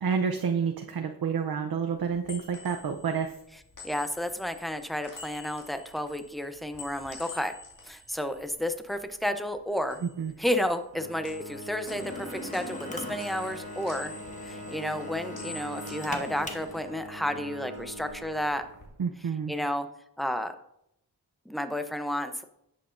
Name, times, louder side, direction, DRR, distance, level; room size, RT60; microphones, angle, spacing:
voice 1, 0.0-3.3 10.2-10.3 19.0-19.5, right 6 dB, 65° right, 4 dB, 0.7 m, -29 dB
sound 1, 1.9-9.3 9.6-11.0 11.2-17.2 17.5-18.9, left 3 dB, 50° left, 2.4 m, -48 dB
voice 2, 3.8-7.5 7.8-10.0 10.4-14.1 14.4-18.7 19.5-19.9 20.2-20.6 21.5-22.4, equal, ahead, 8 dB, 0.7 m, -31 dB
Bowed string instrument, 10.9-19.1, equal, 40° right, 1.3 m, -43 dB
Drill, 11.9-16.9, left 1 dB, 20° left, 1.3 m, -41 dB
10.5 x 8.0 x 2.6 m, 0.78 s
wide cardioid pair, 70°, 39 cm